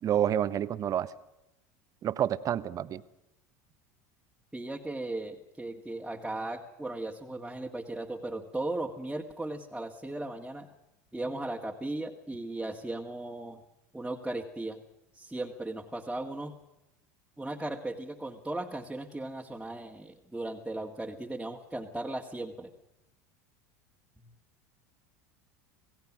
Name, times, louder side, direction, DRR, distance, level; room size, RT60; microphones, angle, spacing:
voice 1, 0.0-1.1 2.0-3.0, right 10 dB, 40° right, 14 dB, 1.1 m, -28 dB
voice 2, 4.5-10.7 11.1-13.6 13.9-14.8 15.1-16.6 17.4-22.7 24.2-24.3, right 2 dB, 5° right, -1 dB, 1.9 m, -37 dB
27.5 x 17.5 x 6.1 m, 0.90 s
hypercardioid pair, 90°, 9 cm